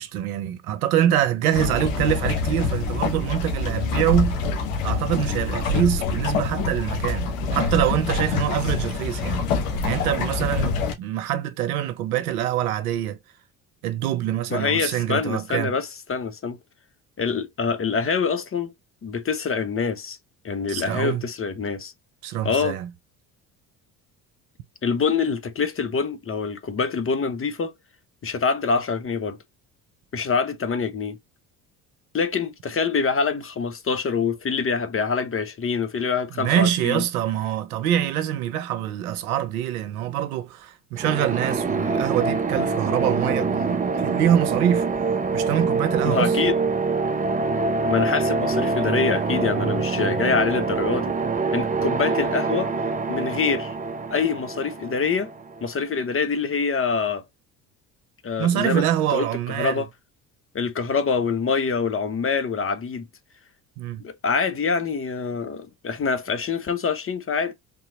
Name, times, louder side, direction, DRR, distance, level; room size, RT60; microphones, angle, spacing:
voice 1, 0.0-4.4 4.8-9.4 9.8-13.2 13.8-15.8 20.7-21.2 22.2-22.9 36.4-44.9 45.3-46.4 58.4-59.8 63.8-64.0, right 11 dB, 85° right, 0.8 m, -25 dB
sound 1, 1.5-10.9, left 4 dB, 80° left, 1.3 m, -25 dB
voice 2, 14.5-16.6 17.2-18.7 19.0-20.2 20.4-21.9 22.4-22.8 24.8-27.7 28.2-29.4 30.1-31.2 32.1-37.0 46.0-46.5 47.9-51.1 51.5-52.7 53.1-53.8 54.1-55.3 55.6-57.2 58.2-59.3 59.6-59.9 60.5-63.1 64.0-67.5, left 5 dB, 30° left, 0.9 m, -25 dB
sound 2, 41.0-55.7, right 4 dB, 20° right, 0.7 m, -25 dB
3.8 x 2.9 x 2.8 m
hypercardioid pair, 60°, 43 cm